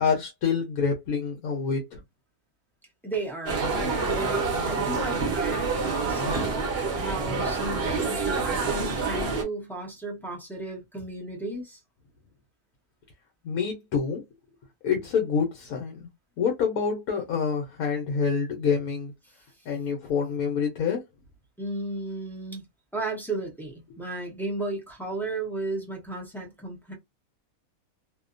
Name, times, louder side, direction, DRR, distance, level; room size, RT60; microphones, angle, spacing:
voice 1, 0.0-2.0 13.4-14.2 14.8-16.1 16.4-19.1 19.6-21.0, left 6 dB, 75° left, 1.1 m, -27 dB
voice 2, 3.0-3.7 4.1-5.8 6.1-6.6 6.9-11.8 21.6-22.6 22.9-26.9, right 2 dB, ahead, 0.6 m, -34 dB
sound 1, 3.5-9.4, right 4 dB, 50° right, 0.9 m, -27 dB
2.7 x 2.2 x 2.5 m
omnidirectional pair, 1.6 m